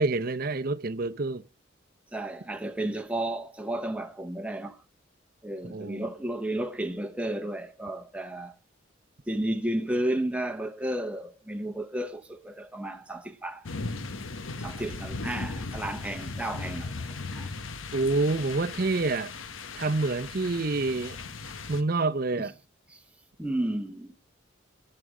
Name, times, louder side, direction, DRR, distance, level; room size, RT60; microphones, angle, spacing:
voice 1, 0.0-1.4 5.6-6.1 17.9-19.3 19.7-21.2 21.7-22.5, right 3 dB, 45° right, 0.7 m, -27 dB
voice 2, 2.1-4.8 5.4-8.5 9.3-13.7 14.6-16.9 17.3-17.5 21.5-21.7 22.9-23.0 23.4-24.1, right 1 dB, 5° right, 0.9 m, -32 dB
sound 1, 13.6-21.8, left 3 dB, 80° left, 1.2 m, -37 dB
22.5 x 7.7 x 4.9 m
head